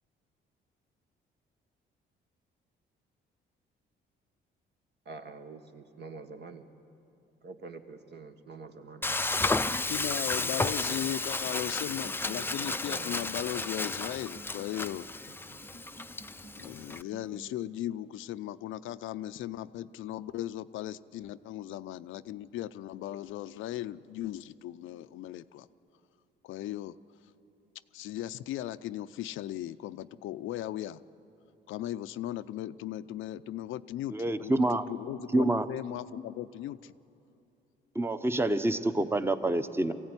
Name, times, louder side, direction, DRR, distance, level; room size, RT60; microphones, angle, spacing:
voice 1, 5.1-6.7 7.4-9.2 9.8-11.0 12.6-13.5 14.7-14.8, right 4 dB, 60° right, 6 dB, 1.7 m, -47 dB
Frying (food), 9.0-17.0, left 2 dB, 10° left, 0.5 m, -33 dB
voice 2, 9.7-15.1 16.6-25.7 26.4-27.0 27.9-31.0 31.7-36.9, left 13 dB, 85° left, 13 dB, 0.6 m, -37 dB
sound 1, 12.0-17.6, right 2 dB, 85° right, 2.6 m, -54 dB
voice 3, 34.1-34.8 35.3-35.7 37.9-39.9, right 1 dB, 10° right, 11 dB, 1.0 m, -27 dB
22.0 x 16.0 x 9.7 m, 2.8 s
cardioid pair, 90°, 20 cm